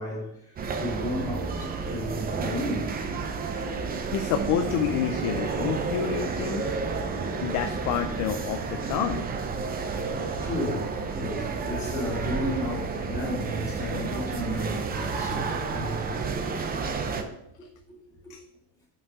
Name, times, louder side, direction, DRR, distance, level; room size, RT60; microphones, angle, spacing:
voice 1, 0.0-3.4 3.8-3.9 10.4-16.3 16.6-16.7 17.1-17.2 17.6-18.0 18.2-18.3, left 1 dB, 5° left, 2.9 m, -34 dB
sound 1, 0.6-17.2, right 4 dB, 20° right, 0.5 m, -31 dB
voice 2, 4.1-6.6 7.4-9.2 15.0-15.1 18.3-18.4, left 8 dB, 40° left, 0.5 m, -28 dB
5.9 x 5.4 x 4.8 m
cardioid pair, 150°, 47 cm